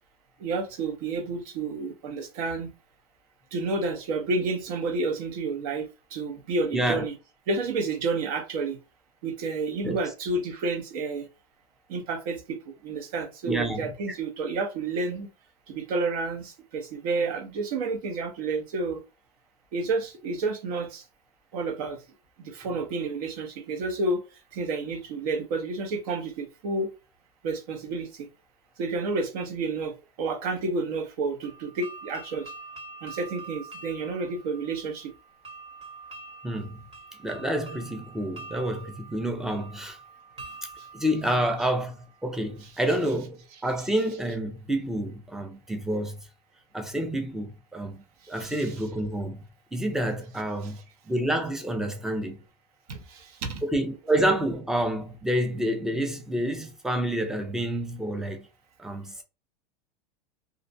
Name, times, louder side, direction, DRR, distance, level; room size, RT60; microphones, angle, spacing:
voice 1, 0.4-2.7 3.5-7.2 7.5-8.8 9.2-11.3 11.9-15.3 15.7-19.0 19.7-21.0 21.5-22.0 22.4-24.2 24.5-26.9 27.4-28.3 28.8-32.5 33.0-35.1 40.8-40.9 42.6-42.7 48.2-48.8 50.6-50.8 52.9-53.6, right 3 dB, 65° right, 0.8 m, -30 dB
voice 2, 6.7-7.0 9.8-10.0 13.5-14.2 36.4-36.8 37.2-40.0 40.9-46.2 46.7-48.0 48.3-49.4 49.7-50.8 51.1-52.4 53.6-58.5 58.8-59.2, right 1 dB, ahead, 0.4 m, -28 dB
sound 1, 31.4-42.2, right 3 dB, 30° right, 1.0 m, -46 dB
2.6 x 2.0 x 2.6 m
supercardioid pair, 125°, 21 cm